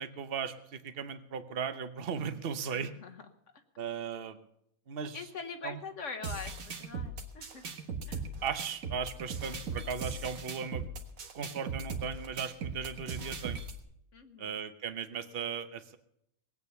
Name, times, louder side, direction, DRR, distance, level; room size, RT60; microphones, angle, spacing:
voice 1, 0.0-2.9 3.8-4.5 4.9-5.2 5.6-5.8 8.4-10.8 11.3-13.6 14.4-16.0, right 7 dB, 45° right, 11 dB, 1.1 m, -37 dB
voice 2, 2.6-3.6 5.1-7.6 8.1-8.3 14.1-14.6, left 5 dB, 60° left, 7 dB, 1.4 m, -44 dB
sound 1, 6.2-13.8, right 4 dB, 65° right, 1.8 m, -39 dB
19.0 x 8.8 x 6.9 m, 0.74 s
omnidirectional pair, 1.5 m